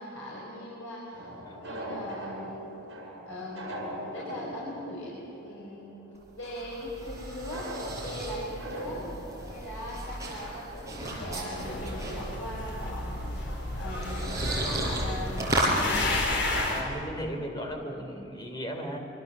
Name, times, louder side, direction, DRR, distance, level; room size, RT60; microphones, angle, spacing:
voice 1, 0.0-2.7 3.3-5.1 5.4-6.0 6.4-7.7 8.0-9.1 9.5-13.2 13.8-15.5, left 1 dB, 85° left, -6 dB, 6.1 m, -40 dB
sound 1, 1.1-5.8 6.1-6.2 7.5-10.4 10.9-11.0 11.2-11.3, equal, 60° right, 7.1 m, -41 dB
sound 2, 6.1-15.8, right 1 dB, 15° right, 6.0 m, -35 dB
sound 3, 11.5-16.8, left 2 dB, 60° left, 4.9 m, -32 dB
voice 2, 16.7-19.0, equal, 20° left, 2 dB, 3.4 m, -36 dB
25.5 x 25.0 x 7.6 m, 2.9 s
head